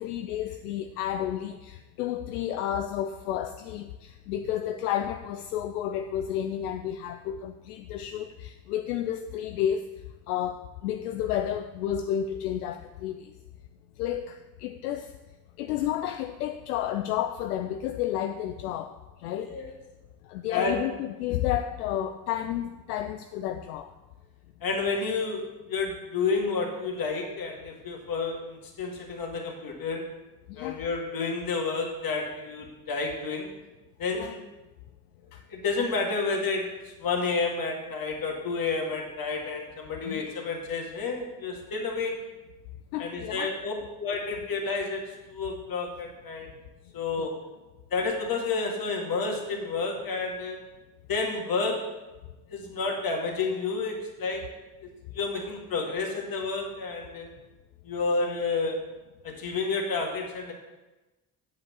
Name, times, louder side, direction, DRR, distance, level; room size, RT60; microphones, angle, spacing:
voice 1, 0.0-9.8 10.3-13.3 14.0-15.1 15.6-18.9 19.2-19.6 20.3-23.9 30.5-30.8 34.1-34.4 35.3-35.4 40.0-40.2 42.9-43.5 47.2-47.3, left 10 dB, 80° left, 6 dB, 0.5 m, -31 dB
voice 2, 19.4-19.7 20.5-20.8 24.6-25.4 25.7-30.0 30.6-33.5 34.0-34.4 35.5-36.7 37.0-42.1 43.0-45.0 45.3-46.5 46.9-47.3 47.9-50.6 51.1-51.8 52.5-54.4 55.1-57.3 57.9-58.8 59.2-60.5, left 4 dB, 50° left, 1 dB, 2.1 m, -30 dB
8.3 x 5.2 x 6.9 m, 1.1 s
figure-of-eight pair, 45°, 45 cm